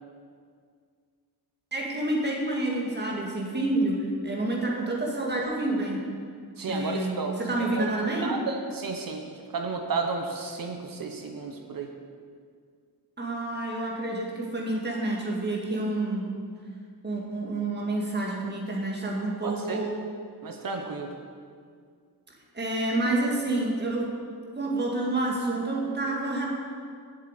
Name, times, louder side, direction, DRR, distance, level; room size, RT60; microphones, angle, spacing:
voice 1, 1.7-6.1 6.7-8.3 13.2-16.4 17.0-19.9 22.5-24.1 24.6-26.5, right 2 dB, 25° right, -2 dB, 2.0 m, -28 dB
voice 2, 6.6-7.3 7.8-7.9 8.2-9.2 9.5-11.9 19.4-19.8 20.4-21.1, right 4 dB, 55° right, 3 dB, 1.0 m, -32 dB
7.9 x 7.3 x 8.1 m, 2.1 s
wide cardioid pair, 145°, 40 cm